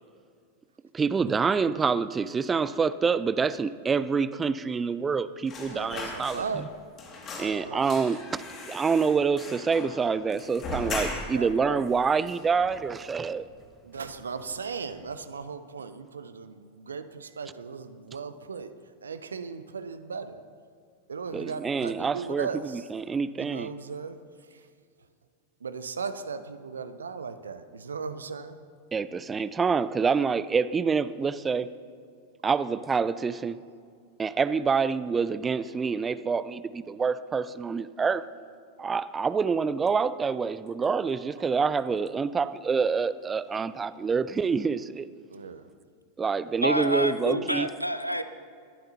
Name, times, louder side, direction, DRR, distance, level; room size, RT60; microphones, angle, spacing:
voice 1, 0.9-6.7 7.4-8.4 8.7-13.5 21.3-23.7 28.9-31.7 32.4-33.6 34.2-38.3 38.8-45.1 46.2-47.7, right 5 dB, 15° right, 15 dB, 0.4 m, -27 dB
sound 1, 5.5-6.7 7.0-11.5 11.9-12.0 12.3-13.1 13.4-13.6 13.9-14.6 14.9-15.1, left 2 dB, 30° left, 2.1 m, -39 dB
voice 2, 5.7-6.7 7.3-7.9 11.0-11.9 13.8-18.7 19.0-20.4 21.1-22.9 23.4-24.6 25.6-28.6 32.4-32.5 45.3-45.7, right 5 dB, 70° right, 11 dB, 0.6 m, -37 dB
voice 3, 46.6-48.2, equal, 90° left, 11 dB, 0.6 m, -28 dB
20.5 x 11.5 x 2.8 m, 2.2 s
figure-of-eight pair, 90°, 0 cm